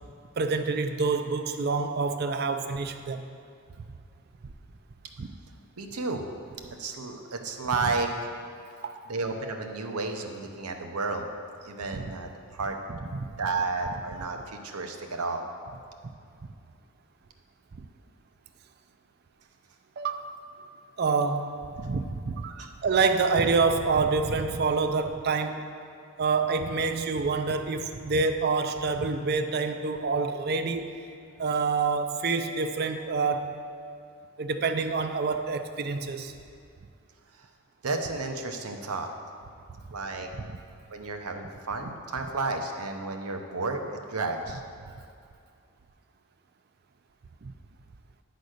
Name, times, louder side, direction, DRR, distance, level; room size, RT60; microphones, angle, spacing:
voice 1, 0.4-3.3 5.2-5.3 8.8-9.0 11.9-12.0 12.9-13.2 20.0-20.3 21.0-22.5 22.8-25.6 26.2-30.9 31.4-33.6 34.4-36.3 47.4-47.5, right 4 dB, 45° right, 8 dB, 0.4 m, -27 dB
voice 2, 5.8-6.2 6.8-8.1 9.1-11.3 11.6-12.8 13.4-15.4 22.5-22.7 37.3-37.5 37.8-39.1 39.9-40.3 40.9-44.6, right 3 dB, 90° right, 4 dB, 0.8 m, -32 dB
10.0 x 4.1 x 6.4 m, 2.4 s
head